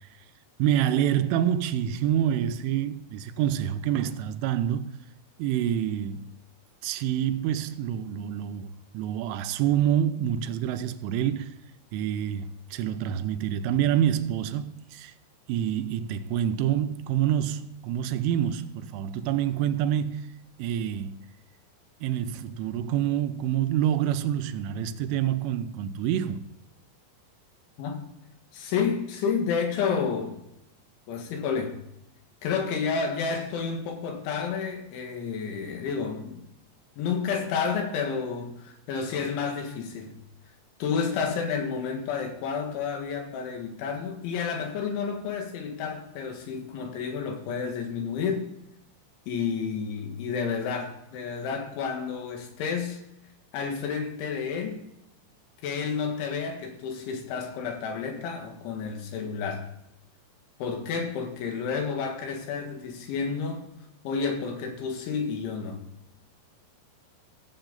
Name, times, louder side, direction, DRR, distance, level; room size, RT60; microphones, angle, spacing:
voice 1, 0.6-5.0 5.4-6.2 6.8-8.7 8.9-11.5 11.9-15.1 15.5-20.3 20.6-21.2 22.0-26.5, right 10 dB, 85° right, 3.2 m, -27 dB
voice 2, 28.5-30.4 31.1-31.8 32.4-36.4 37.0-40.1 40.8-48.5 49.3-53.0 53.5-54.8 55.6-59.7 60.6-63.7 64.0-65.8, left 6 dB, 75° left, 3.9 m, -30 dB
16.0 x 7.7 x 3.8 m
omnidirectional pair, 5.7 m